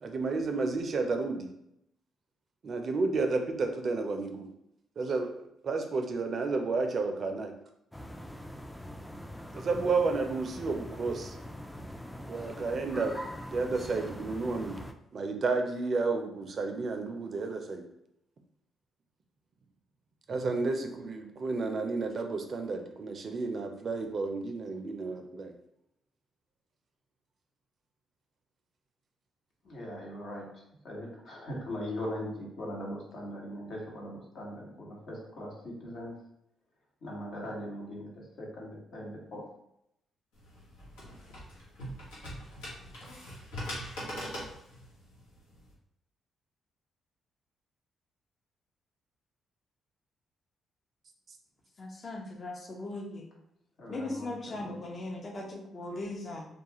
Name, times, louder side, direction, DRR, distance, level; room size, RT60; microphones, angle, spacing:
voice 1, 0.0-1.5 2.6-4.5 5.0-7.5 9.5-11.4 12.2-13.2 13.5-14.8 15.1-17.8 20.3-25.5, right 3 dB, 55° right, 5 dB, 0.4 m, -31 dB
sound 1, 7.9-14.9, equal, 10° left, 0.3 m, -43 dB
voice 2, 29.6-30.5 30.8-36.1 37.0-39.4 53.8-54.7, equal, 65° left, -3 dB, 1.0 m, -40 dB
sound 2, 40.3-45.7, equal, 85° left, 0.9 m, -42 dB
voice 3, 51.8-53.2 53.9-56.5, left 2 dB, 45° left, 0 dB, 0.7 m, -38 dB
2.3 x 2.3 x 2.9 m, 0.78 s
hypercardioid pair, 50°, 0 cm